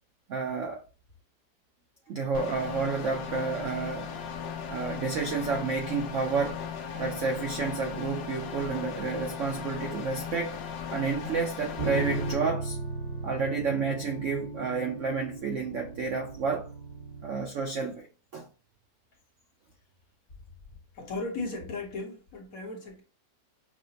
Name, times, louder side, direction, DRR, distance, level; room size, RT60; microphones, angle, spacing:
voice 1, 0.3-0.8 2.1-4.1 4.7-6.6 7.0-10.6 10.9-12.8 13.2-16.7 17.2-18.1 18.3-18.5, right 4 dB, 75° right, 0.7 m, -30 dB
sound 1, 2.3-12.3, left 7 dB, 85° left, 1.3 m, -37 dB
sound 2, 11.8-17.4, right 3 dB, 25° right, 1.0 m, -36 dB
voice 2, 20.9-23.0, left 3 dB, 60° left, 1.3 m, -36 dB
5.8 x 2.1 x 2.6 m
omnidirectional pair, 1.9 m